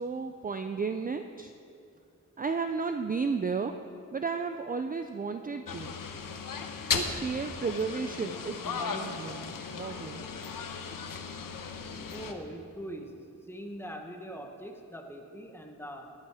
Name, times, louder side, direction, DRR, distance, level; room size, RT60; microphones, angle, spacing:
voice 1, 0.0-1.5 2.4-3.7 4.1-6.0 6.9-10.3, right 5 dB, 25° right, 7 dB, 0.4 m, -33 dB
sound 1, 5.7-12.3, left 5 dB, 80° left, 1.1 m, -36 dB
voice 2, 12.1-13.2 13.5-16.1, equal, 5° left, 3 dB, 1.1 m, -42 dB
19.5 x 11.5 x 4.9 m, 2.5 s
wide cardioid pair, 175°, 33 cm